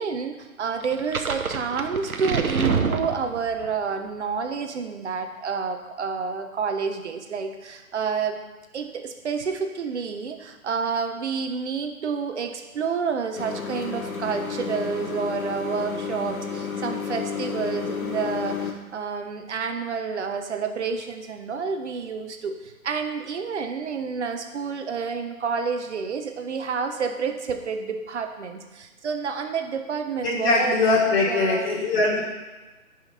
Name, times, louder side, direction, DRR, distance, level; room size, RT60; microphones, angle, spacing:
voice 1, 0.0-8.4 8.7-30.8 31.3-31.7, right 5 dB, 55° right, 6 dB, 1.3 m, -29 dB
sound 1, 0.8-3.7, right 5 dB, 85° right, 1.1 m, -27 dB
sound 2, 13.4-18.7, left 6 dB, 80° left, 1.5 m, -31 dB
voice 2, 30.2-32.2, left 3 dB, 45° left, -4 dB, 3.4 m, -21 dB
14.0 x 5.7 x 4.3 m, 1.2 s
figure-of-eight pair, 140°, 42 cm